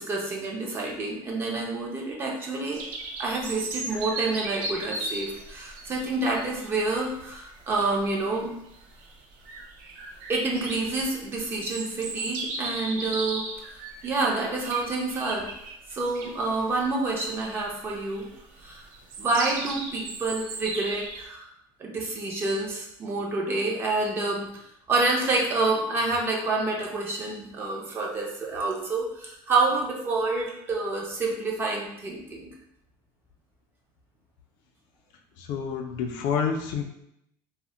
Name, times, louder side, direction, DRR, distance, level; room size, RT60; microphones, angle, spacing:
voice 1, 0.0-2.8 3.2-8.5 10.3-13.4 14.0-15.5 15.9-18.3 18.6-18.8 19.2-21.5 21.8-24.5 24.9-32.5, right 3 dB, 25° right, -1 dB, 0.4 m, -28 dB
sound 1, 2.7-21.2, right 3 dB, 80° right, 0.4 m, -37 dB
voice 2, 35.5-36.8, left 6 dB, 60° left, 3 dB, 0.4 m, -28 dB
2.1 x 2.0 x 3.6 m, 0.77 s
cardioid pair, 165°, 10 cm